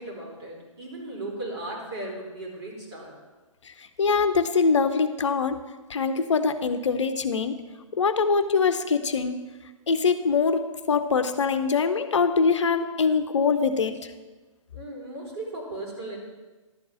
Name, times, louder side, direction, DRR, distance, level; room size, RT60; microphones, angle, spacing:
voice 1, 0.0-3.1 14.7-16.2, right 2 dB, 50° right, -3 dB, 3.8 m, -36 dB
voice 2, 3.6-5.6 5.9-7.6 7.9-9.4 9.9-14.1, left 5 dB, 60° left, 10 dB, 0.7 m, -23 dB
12.0 x 4.6 x 7.5 m, 1.2 s
figure-of-eight pair, 125°, 17 cm